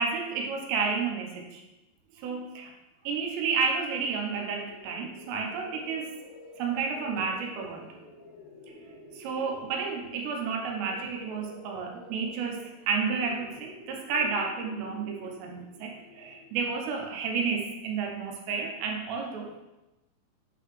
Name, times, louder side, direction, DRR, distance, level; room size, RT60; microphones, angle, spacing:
voice 1, 0.0-1.6 2.2-2.7 3.0-6.1 6.6-7.9 9.1-19.6, right 5 dB, 80° right, 2 dB, 2.8 m, -31 dB
sound 1, 4.0-16.8, left 2 dB, 65° left, 2.8 m, -50 dB
9.0 x 3.9 x 3.1 m, 1.0 s
omnidirectional pair, 5.1 m